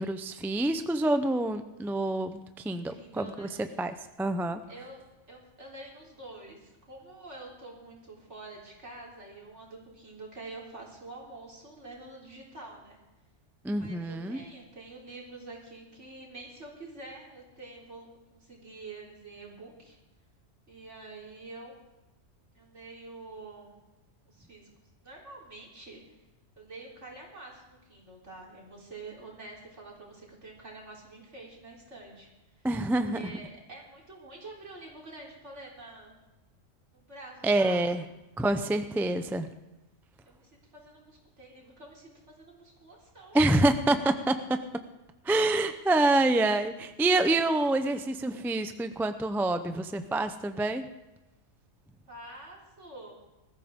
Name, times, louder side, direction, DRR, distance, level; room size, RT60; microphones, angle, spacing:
voice 1, 0.0-3.5 3.8-4.6 13.6-14.4 32.6-33.3 37.4-38.0 38.4-39.5 43.3-44.3 45.3-50.8, right 2 dB, 5° right, 9 dB, 0.3 m, -27 dB
voice 2, 2.9-4.1 4.7-5.0 5.3-13.0 13.7-20.0 20.7-21.7 22.5-23.7 24.3-24.7 25.0-26.2 26.6-32.3 32.6-32.7 33.1-36.1 36.9-38.1 40.3-43.4 52.1-53.1, right 2 dB, 65° right, -3 dB, 4.2 m, -47 dB
21.0 x 14.0 x 3.7 m, 1.0 s
omnidirectional pair, 1.3 m